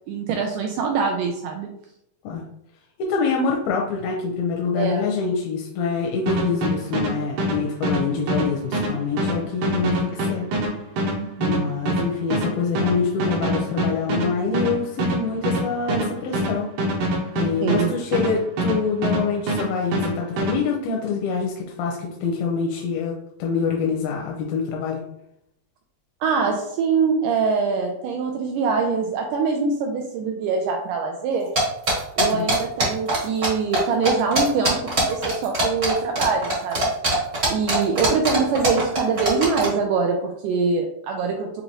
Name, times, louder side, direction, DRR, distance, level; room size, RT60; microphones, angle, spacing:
voice 1, 0.1-1.7 4.8-5.0 11.2-11.7 17.6-18.0 26.2-31.5 32.2-36.9 37.5-41.6, right 5 dB, 85° right, 2 dB, 1.8 m, -24 dB
voice 2, 3.0-10.4 11.4-16.7 17.4-25.0 32.2-32.5, left 5 dB, 90° left, 0 dB, 2.4 m, -25 dB
sound 1, 6.3-19.2 19.5-20.6, right 1 dB, 70° right, 2.4 m, -24 dB
sound 2, 31.6-33.5 33.7-33.8 34.0-39.7, right 1 dB, 40° right, 0.9 m, -21 dB
6.5 x 2.8 x 2.9 m, 0.75 s
omnidirectional pair, 4.2 m